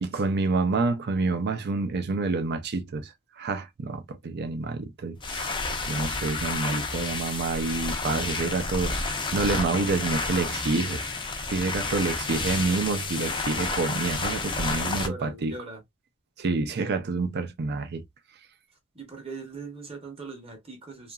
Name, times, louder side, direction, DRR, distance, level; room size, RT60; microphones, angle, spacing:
voice 1, 0.0-5.5 5.9-11.0 11.5-15.5 16.4-18.0, right 3 dB, 50° right, 0.5 m, -28 dB
sound 1, 5.2-15.1, left 3 dB, 20° left, 0.5 m, -30 dB
voice 2, 14.8-15.8 18.9-21.1, right 3 dB, 25° right, 0.9 m, -41 dB
2.8 x 2.5 x 2.3 m
head